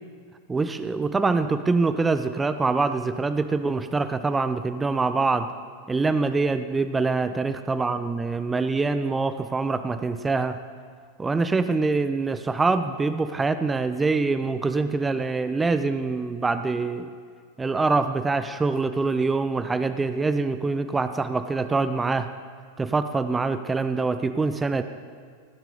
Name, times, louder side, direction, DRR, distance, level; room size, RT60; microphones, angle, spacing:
voice 1, 0.5-5.5 5.9-10.6 11.2-17.1 17.6-22.3 22.8-24.8, right 3 dB, 10° right, 11 dB, 0.5 m, -24 dB
15.0 x 12.5 x 3.9 m, 2.1 s
figure-of-eight pair, 90°, 0 cm